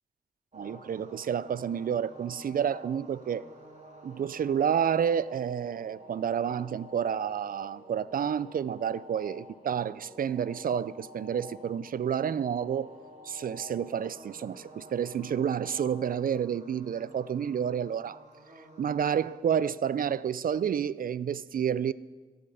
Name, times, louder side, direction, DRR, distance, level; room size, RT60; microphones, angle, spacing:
sound 1, 0.5-19.4, equal, 45° right, 3.1 m, -50 dB
voice 1, 0.5-3.4 4.0-12.9 13.2-18.2 18.8-21.9, right 8 dB, 60° right, 0.4 m, -30 dB
14.0 x 8.6 x 5.6 m
cardioid pair, 50°, 16 cm